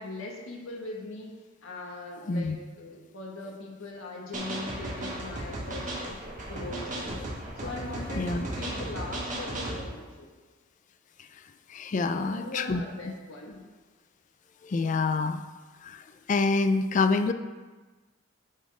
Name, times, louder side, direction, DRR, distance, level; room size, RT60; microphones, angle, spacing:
voice 1, 0.0-1.3 1.6-7.2 7.6-10.3 11.9-13.6, left 2 dB, 85° left, -1 dB, 1.5 m, -40 dB
sound 1, 4.3-9.8, right 1 dB, 40° right, 1.4 m, -35 dB
voice 2, 11.7-12.8 14.6-15.4 15.8-16.0 16.3-17.3, left 3 dB, 35° left, 10 dB, 0.3 m, -26 dB
9.1 x 4.2 x 4.8 m, 1.3 s
head